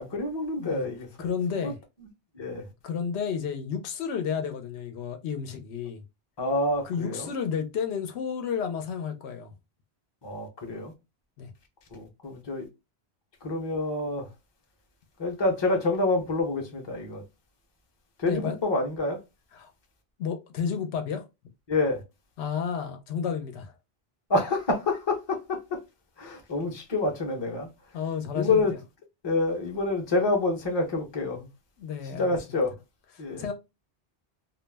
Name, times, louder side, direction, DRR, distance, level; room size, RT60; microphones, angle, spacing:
voice 1, 0.0-1.1 1.6-1.7 2.3-2.6 6.4-7.3 10.2-10.9 11.9-12.7 13.4-14.3 15.2-17.2 18.2-19.2 21.7-22.0 24.3-25.8 26.2-27.7 28.3-28.7 29.2-31.5 32.1-32.7 33.2-33.5, left 2 dB, 30° left, 0.6 m, -27 dB
voice 2, 1.2-1.8 2.8-6.0 6.8-9.5 11.4-11.5 18.3-18.6 19.5-19.7 20.2-21.2 22.4-23.7 27.9-28.8 31.8-32.6 33.4-33.5, left 7 dB, 85° left, 0.8 m, -31 dB
2.3 x 2.0 x 3.2 m
omnidirectional pair, 1.1 m